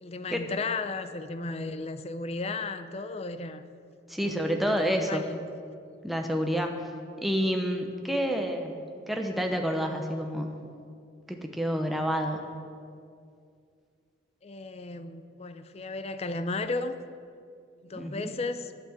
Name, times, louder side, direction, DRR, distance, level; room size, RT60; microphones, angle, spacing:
voice 1, 0.0-3.6 4.1-5.4 8.2-8.3 14.4-17.0 17.8-18.7, left 3 dB, 35° left, 11 dB, 0.5 m, -35 dB
voice 2, 4.1-5.2 6.0-6.9 7.2-10.6 11.3-12.4 17.9-18.3, equal, ahead, 3 dB, 0.8 m, -29 dB
10.5 x 5.9 x 8.4 m, 2.3 s
head